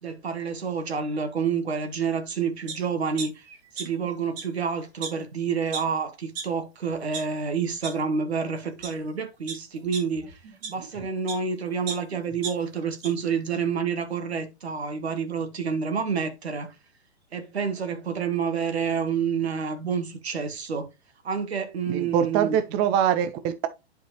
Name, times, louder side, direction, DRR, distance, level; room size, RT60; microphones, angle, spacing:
voice 1, 0.0-3.4 3.7-10.4 10.7-16.7 17.3-20.9 21.2-22.6, right 6 dB, 70° right, 1.8 m, -28 dB
sound 1, 2.7-2.8 3.2-4.1 4.3-4.4 5.0-5.1 5.7-5.8 6.3-6.4 6.9-7.2 7.8-7.9 8.6-8.9 9.5-11.4 11.9-13.1 13.5-13.6, right 5 dB, 40° right, 3.4 m, -35 dB
voice 2, 21.9-23.7, right 9 dB, 15° right, 0.4 m, -24 dB
11.0 x 4.5 x 3.0 m
figure-of-eight pair, 110°, 34 cm